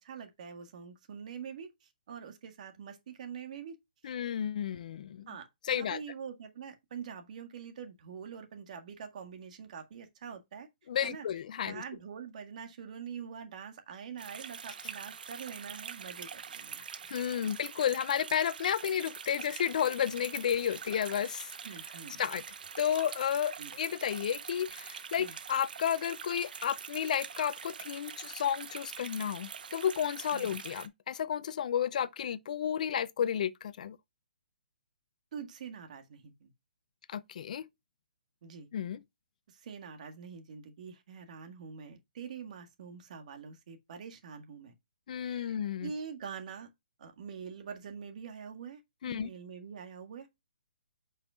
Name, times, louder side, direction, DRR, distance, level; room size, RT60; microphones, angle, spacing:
voice 1, 0.0-3.8 5.3-5.5 5.7-10.7 11.0-11.3 11.6-16.8 17.4-17.5 21.6-22.2 23.6-23.7 25.2-25.3 30.3-30.5 35.3-36.5 38.4-38.7 39.5-44.7 45.2-46.7 47.0-48.8 49.1-50.3, right 7 dB, 50° right, 1.8 m, -45 dB
voice 2, 4.0-5.3 5.7-6.0 10.9-11.8 17.1-21.5 22.2-22.4 22.8-34.0 37.1-37.7 38.7-39.0 45.1-45.9 49.0-49.3, left 9 dB, 55° left, 0.5 m, -32 dB
sound 1, 14.2-30.9, right 6 dB, 65° right, 1.0 m, -44 dB
8.9 x 5.5 x 2.4 m
hypercardioid pair, 150°, 5 cm